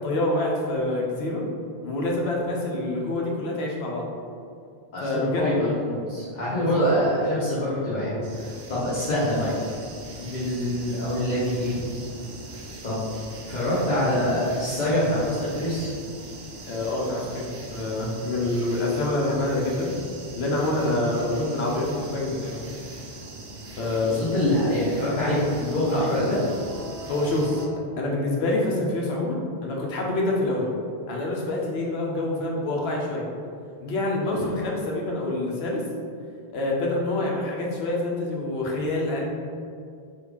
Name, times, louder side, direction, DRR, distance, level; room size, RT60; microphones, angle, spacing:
voice 1, 0.0-1.4 1.8-4.1 5.0-5.5 6.6-7.1 16.7-19.9 20.3-22.7 23.8-24.2 27.1-27.5 28.0-30.7 31.1-33.2 33.8-35.8 36.5-39.3, left 2 dB, 85° left, -2 dB, 0.9 m, -26 dB
voice 2, 4.9-9.5 10.2-11.8 12.8-13.0 13.5-15.9 24.0-26.4 34.2-34.4, left 1 dB, 50° left, -10 dB, 0.8 m, -25 dB
sound 1, 8.2-27.7, right 2 dB, 85° right, 0.8 m, -41 dB
3.2 x 2.3 x 3.4 m, 2.3 s
omnidirectional pair, 1.0 m